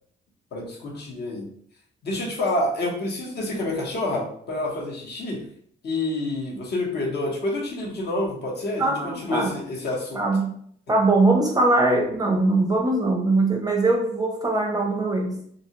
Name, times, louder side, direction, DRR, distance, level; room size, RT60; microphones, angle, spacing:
voice 1, 0.5-1.5 2.0-5.4 5.8-10.2, left 2 dB, 55° left, -1 dB, 0.9 m, -28 dB
voice 2, 8.8-9.6 10.1-10.6 10.9-15.4, right 2 dB, 20° right, 1 dB, 0.5 m, -21 dB
2.6 x 2.3 x 2.8 m, 0.64 s
cardioid pair, 90°, 20 cm